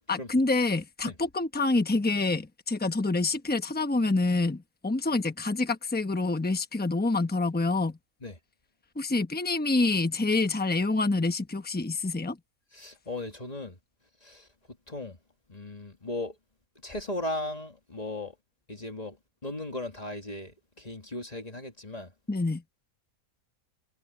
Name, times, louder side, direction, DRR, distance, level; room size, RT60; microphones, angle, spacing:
voice 1, 0.1-8.0 9.0-12.4 22.3-22.6, left 3 dB, 10° left, 0.9 m, -27 dB
voice 2, 12.7-13.8 14.2-15.2 15.5-16.4 16.8-18.3 18.7-19.2 19.4-22.1, left 2 dB, 25° left, 2.1 m, -37 dB
omnidirectional pair, 1.6 m